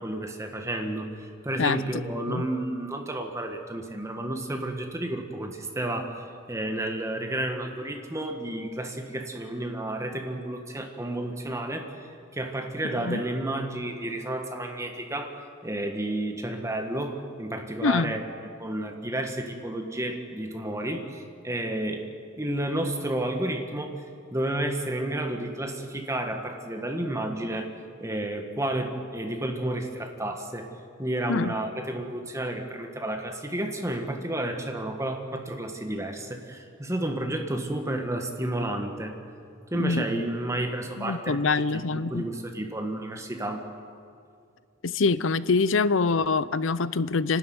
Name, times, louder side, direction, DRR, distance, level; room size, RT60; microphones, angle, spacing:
voice 1, 0.0-6.2 6.5-11.9 12.3-15.3 15.6-18.2 18.6-22.1 22.4-23.9 24.3-27.7 28.0-30.7 31.0-39.1 39.7-41.4 41.7-43.6, right 1 dB, 15° right, 4 dB, 1.7 m, -31 dB
voice 2, 17.8-18.1 31.3-31.5 39.7-40.0 41.0-42.3 44.8-47.4, left 4 dB, 75° left, 16 dB, 0.7 m, -25 dB
29.5 x 12.5 x 9.5 m, 2.4 s
head